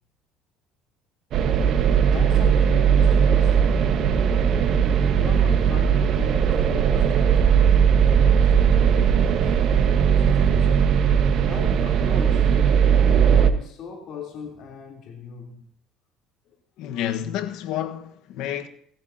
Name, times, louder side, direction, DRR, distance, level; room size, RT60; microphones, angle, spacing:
sound 1, 1.3-13.5, right 7 dB, 55° right, 1.2 m, -18 dB
voice 1, 2.0-4.8 5.1-7.5 7.9-9.7 10.2-11.0 11.4-12.5 13.4-15.6 16.4-16.5, left 6 dB, 55° left, 3.4 m, -39 dB
voice 2, 16.8-18.7, left 11 dB, 75° left, 1.3 m, -29 dB
18.5 x 15.5 x 2.8 m
cardioid pair, 125°, 0 cm